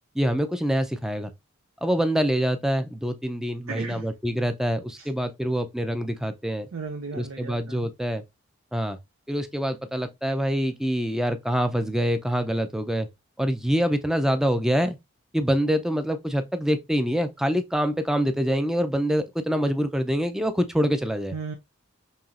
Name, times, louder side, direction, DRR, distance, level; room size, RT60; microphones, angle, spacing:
voice 1, 0.1-1.3 1.8-6.7 7.1-8.2 8.7-9.0 9.3-13.1 13.4-15.0 15.3-21.3, equal, ahead, 0.4 m, -25 dB
voice 2, 3.7-4.1 5.0-5.1 6.7-7.9 21.3-21.6, right 4 dB, 75° right, 0.5 m, -35 dB
5.5 x 2.9 x 2.4 m
head